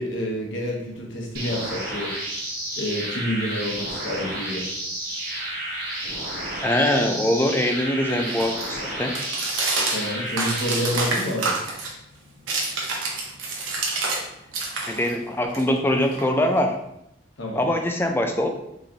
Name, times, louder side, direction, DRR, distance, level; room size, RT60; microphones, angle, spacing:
voice 1, 0.0-2.1 2.8-4.7 9.9-11.6 17.4-17.7, equal, 65° left, -1 dB, 1.0 m, -28 dB
sound 1, 1.3-11.0, right 1 dB, 45° right, 1.2 m, -31 dB
voice 2, 6.6-9.2 14.9-16.8 17.6-18.5, left 1 dB, 10° left, 4 dB, 0.3 m, -23 dB
sound 2, 6.8-14.2 14.5-16.7, right 3 dB, 75° right, 0.9 m, -29 dB
4.9 x 3.2 x 2.8 m, 0.82 s
head